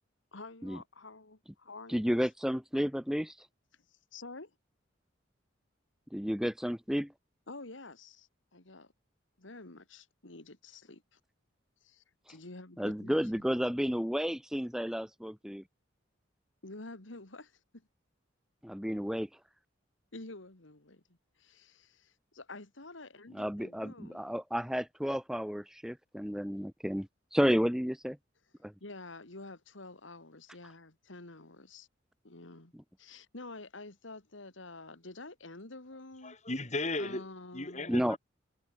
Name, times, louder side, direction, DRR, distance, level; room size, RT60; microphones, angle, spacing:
voice 1, 0.3-2.3 3.9-4.5 7.5-8.9 9.4-11.2 11.8-13.4 16.6-17.9 20.1-24.4 28.8-31.9 32.2-32.7 33.0-36.4 37.0-37.9, left 2 dB, 80° left, 2.6 m, -49 dB
voice 2, 1.9-3.5 6.1-7.1 12.8-15.6 18.6-19.3 23.3-28.2 28.6-28.7 37.9-38.2, equal, 5° right, 1.0 m, -32 dB
voice 3, 36.2-37.3 37.5-38.2, left 2 dB, 35° left, 4.8 m, -35 dB
head